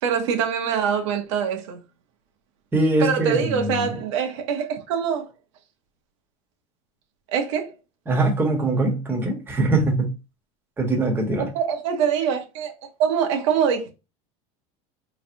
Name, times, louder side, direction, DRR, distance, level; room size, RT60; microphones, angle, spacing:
voice 1, 0.0-1.8 3.0-5.3 7.3-7.7 11.4-12.7 13.0-13.9, right 7 dB, 85° right, 0.9 m, -24 dB
voice 2, 2.7-3.9 8.1-10.1 10.8-11.5, right 2 dB, 15° right, 1.2 m, -22 dB
4.0 x 3.2 x 2.6 m
supercardioid pair, 135°, 15 cm